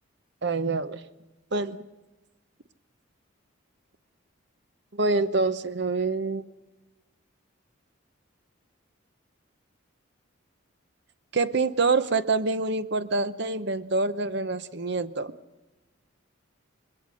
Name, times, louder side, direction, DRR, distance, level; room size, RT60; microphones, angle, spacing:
voice 1, 0.4-1.0 1.5-1.8 4.9-6.4 11.3-15.3, right 3 dB, 55° right, 13 dB, 0.8 m, -26 dB
26.0 x 22.0 x 6.3 m, 1.1 s
head